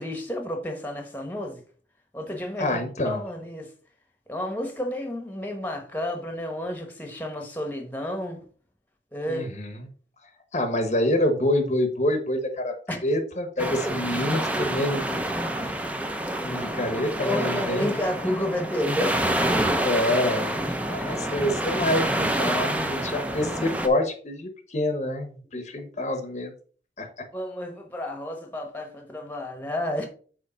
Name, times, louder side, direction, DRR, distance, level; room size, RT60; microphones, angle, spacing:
voice 1, 0.0-1.6 2.1-3.7 4.3-8.4 9.1-9.5 12.9-13.0 17.2-19.2 27.3-30.1, left 1 dB, 10° left, 1.0 m, -31 dB
voice 2, 2.6-3.2 9.3-9.9 10.5-12.7 13.0-15.8 16.4-17.9 19.8-26.5 27.0-27.1, left 1 dB, 40° left, 0.9 m, -27 dB
sound 1, 13.6-23.9, right 1 dB, 10° right, 0.6 m, -27 dB
8.3 x 3.2 x 5.0 m
head